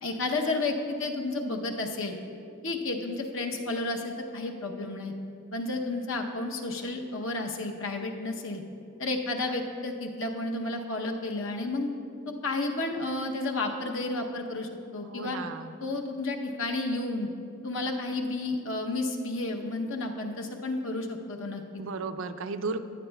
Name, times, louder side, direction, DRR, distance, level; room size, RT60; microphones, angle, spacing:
voice 1, 0.0-2.1 2.6-5.1 5.5-8.6 9.0-11.9 12.4-15.4 15.8-17.3 17.6-21.6, left 2 dB, 60° left, 3 dB, 0.8 m, -31 dB
voice 2, 15.0-15.7 21.8-22.8, right 4 dB, 60° right, 10 dB, 0.4 m, -34 dB
15.0 x 9.5 x 2.3 m, 2.6 s
head